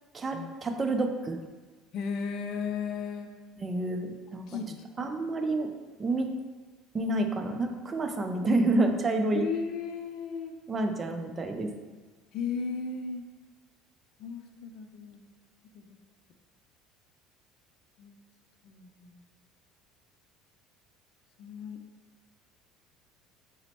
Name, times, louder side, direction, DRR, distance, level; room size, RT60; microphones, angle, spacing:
voice 1, 0.1-1.4 3.6-4.6 5.0-5.7 6.0-6.3 6.9-9.5 10.7-11.7, right 2 dB, 30° right, 5 dB, 0.4 m, -28 dB
voice 2, 1.9-3.3 4.5-5.1 9.3-10.6 12.3-13.2 14.2-15.2 15.7-15.8 18.0-18.2 18.6-19.2 21.4-21.8, left 5 dB, 60° left, 4 dB, 0.3 m, -35 dB
3.9 x 2.1 x 4.3 m, 1.3 s
supercardioid pair, 80°, 0 cm